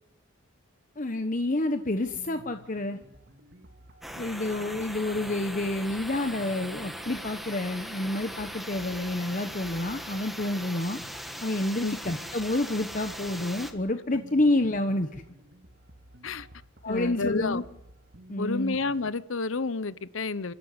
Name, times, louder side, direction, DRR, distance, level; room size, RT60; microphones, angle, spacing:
voice 1, 1.0-3.0 4.2-11.0 11.4-15.2 16.8-17.6 18.3-18.8, left 1 dB, 40° left, 1.1 m, -29 dB
sound 1, 2.0-19.0, right 1 dB, 50° right, 2.3 m, -53 dB
sound 2, 4.0-13.7, equal, ahead, 1.7 m, -40 dB
voice 2, 16.9-17.6 18.4-20.5, left 3 dB, 75° left, 0.9 m, -30 dB
28.5 x 12.5 x 9.8 m
head